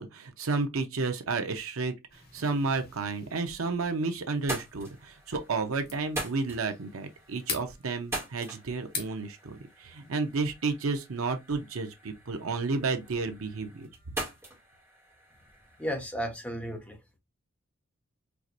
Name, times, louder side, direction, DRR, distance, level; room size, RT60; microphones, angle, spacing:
voice 1, 0.0-13.9, right 3 dB, 85° right, 0.7 m, -32 dB
sound 1, 2.1-10.5, left 5 dB, 45° left, 1.1 m, -45 dB
sound 2, 3.8-4.0 4.3-15.9, right 1 dB, 15° right, 1.4 m, -43 dB
voice 2, 15.8-17.0, equal, 5° left, 0.8 m, -34 dB
4.6 x 2.5 x 2.5 m
head